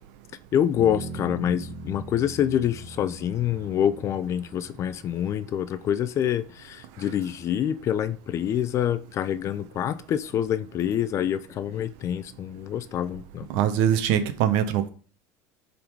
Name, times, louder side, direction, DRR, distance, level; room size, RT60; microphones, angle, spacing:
voice 1, 0.5-13.5, left 10 dB, 35° left, 0.5 m, -26 dB
Bass guitar, 0.8-5.2, right 2 dB, 15° left, 1.7 m, -40 dB
voice 2, 13.5-14.9, right 9 dB, 70° right, 1.1 m, -22 dB
10.0 x 4.0 x 4.6 m
supercardioid pair, 140°, 8 cm